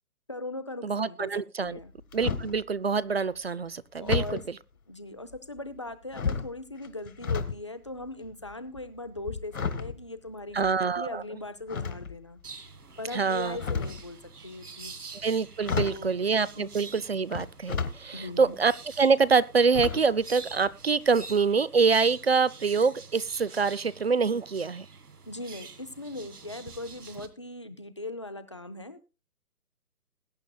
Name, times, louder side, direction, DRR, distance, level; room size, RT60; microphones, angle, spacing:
voice 1, 0.3-1.9 4.0-4.4 4.9-12.4 13.0-14.2 14.4-14.9 15.8-16.9 18.1-18.5 25.3-29.0, left 2 dB, 20° left, 0.5 m, -40 dB
voice 2, 0.8-1.8 2.1-4.4 10.5-11.2 13.1-13.6 15.2-18.7 19.0-24.9, right 5 dB, 45° right, 0.5 m, -25 dB
sound 1, 1.7-2.6 4.1-4.5 5.3-5.8 6.1-7.6 7.9-10.9 11.7-12.4 13.4-14.1 15.2-15.3 15.6-16.1 17.3-18.0 18.5-18.6 19.7-20.2 20.5-20.7 21.0-21.1, left 5 dB, 65° left, 2.0 m, -32 dB
sound 2, 12.4-27.3, right 4 dB, 80° right, 2.0 m, -47 dB
21.0 x 9.2 x 2.3 m
figure-of-eight pair, 155°, 45 cm